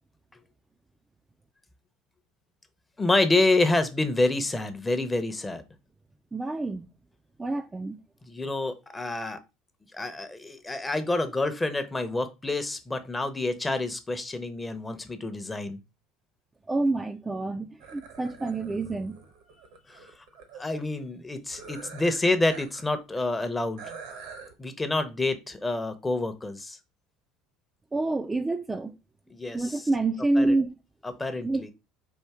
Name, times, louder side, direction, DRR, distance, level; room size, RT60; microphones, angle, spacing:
voice 1, 3.0-5.6 8.2-9.4 9.9-15.8 19.9-20.1 20.5-23.9 24.6-26.8 29.3-29.9 30.3-30.6 31.0-31.7, left 2 dB, 15° left, 0.7 m, -28 dB
voice 2, 6.3-6.9 7.4-8.0 16.7-17.7 17.9-19.1 27.9-28.9 29.5-30.7 31.4-31.6, right 2 dB, 15° right, 0.4 m, -27 dB
sound 1, 17.8-20.6 21.5-22.9 23.2-23.3 23.8-24.5, right 5 dB, 75° right, 0.9 m, -45 dB
4.4 x 2.6 x 3.5 m
hypercardioid pair, 70°, 0 cm